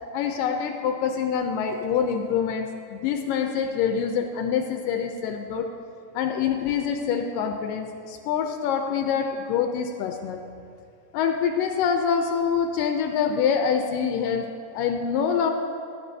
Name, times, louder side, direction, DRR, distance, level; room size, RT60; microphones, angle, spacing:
voice 1, 0.1-5.7 6.1-10.4 11.1-14.5 14.7-15.5, left 7 dB, 85° left, 4 dB, 2.3 m, -25 dB
20.5 x 9.4 x 2.7 m, 2.6 s
omnidirectional pair, 3.8 m